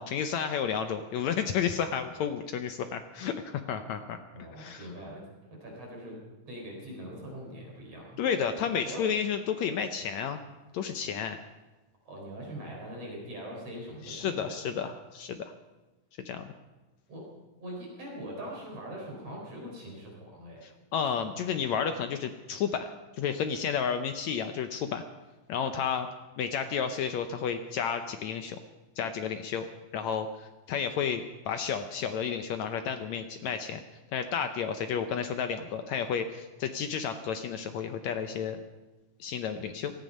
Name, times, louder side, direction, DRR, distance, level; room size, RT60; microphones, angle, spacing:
voice 1, 0.0-4.2 4.6-4.9 8.2-10.4 10.7-11.4 14.0-15.5 16.2-16.5 20.6-25.0 25.5-26.1 26.4-28.6 29.0-29.7 29.9-33.8 34.1-38.6 39.2-39.9, left 7 dB, 75° left, 8 dB, 1.6 m, -31 dB
voice 2, 4.3-5.2 5.6-6.2 6.5-9.1 12.1-14.9 17.1-17.3 17.6-20.6 21.0-21.1, equal, 45° right, -2 dB, 5.2 m, -42 dB
18.5 x 14.0 x 5.3 m, 1.2 s
omnidirectional pair, 4.0 m